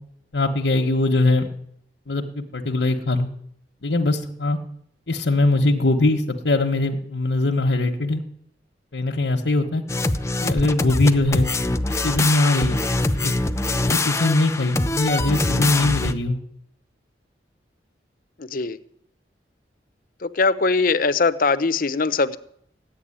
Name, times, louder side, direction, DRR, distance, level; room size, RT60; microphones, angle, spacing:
voice 1, 0.3-1.5 2.1-3.3 3.8-4.6 5.1-8.2 8.9-9.8 10.4-11.5 11.9-12.8 13.1-13.3 13.9-16.4, left 2 dB, 85° left, 1 dB, 1.3 m, -21 dB
sound 1, 9.9-16.1, left 2 dB, 15° left, 0.7 m, -23 dB
voice 2, 18.4-18.8 20.2-22.4, left 4 dB, 55° left, 13 dB, 0.8 m, -21 dB
14.0 x 8.9 x 10.0 m, 0.69 s
head